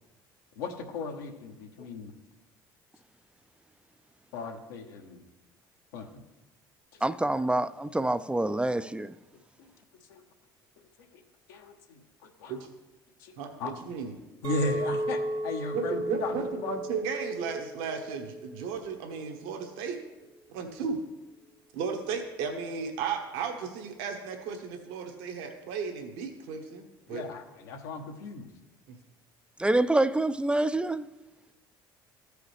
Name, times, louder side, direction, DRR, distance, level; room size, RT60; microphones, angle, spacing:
voice 1, 0.6-2.1 4.3-5.2 5.9-6.2 6.9-7.0 9.3-9.7 10.1-10.2 11.1-11.2 11.5-12.7 13.2-13.3 13.6-13.7 14.4-16.8 27.1-28.5, left 3 dB, 75° left, 1.1 m, -36 dB
voice 2, 7.0-9.1 29.6-31.1, right 2 dB, 10° right, 0.4 m, -26 dB
voice 3, 13.4-14.1 15.7-20.0 20.5-21.0 21.7-27.2 28.9-29.0, right 6 dB, 70° right, 1.3 m, -35 dB
Chink clink, 14.4-18.8 19.1-19.6, right 1 dB, 50° right, 1.1 m, -35 dB
14.5 x 4.9 x 3.3 m
hypercardioid pair, 60°, 12 cm